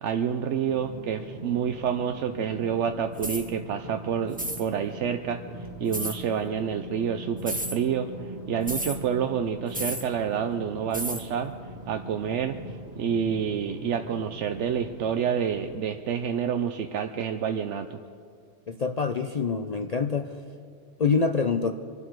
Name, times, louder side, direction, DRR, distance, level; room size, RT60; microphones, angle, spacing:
voice 1, 0.0-8.1 8.5-11.5 11.9-12.6 13.0-18.0, right 8 dB, 75° right, 7 dB, 1.0 m, -28 dB
sound 1, 0.6-15.9, right 1 dB, 35° right, 1.7 m, -41 dB
sound 2, 3.2-3.5 4.3-4.6 5.9-6.2 7.4-7.8 8.7-9.0 9.7-10.1 10.9-11.3, right 1 dB, 5° right, 1.2 m, -32 dB
voice 2, 18.7-20.4 21.0-21.7, left 5 dB, 45° left, 7 dB, 0.5 m, -26 dB
24.5 x 12.0 x 4.7 m, 2.3 s
omnidirectional pair, 1.2 m